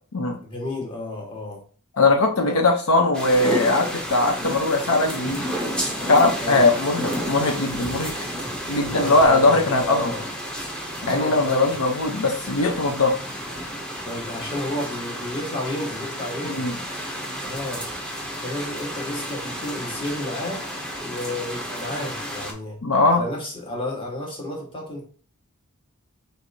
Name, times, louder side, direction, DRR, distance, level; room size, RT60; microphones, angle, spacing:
voice 1, 0.4-1.6 2.4-2.6 6.4-6.7 8.9-10.3 11.0-11.7 14.0-16.7 17.4-17.8 18.4-20.7 21.0-22.8 23.0-25.0, left 1 dB, 25° left, -1 dB, 1.4 m, -31 dB
voice 2, 2.0-5.4 6.1-8.1 8.7-10.1 11.0-13.2 16.5-16.7 22.8-23.2, left 2 dB, 75° left, 3 dB, 0.7 m, -20 dB
sound 1, 3.1-22.5, equal, 5° left, 0.7 m, -31 dB
4.6 x 3.2 x 2.7 m, 0.42 s
head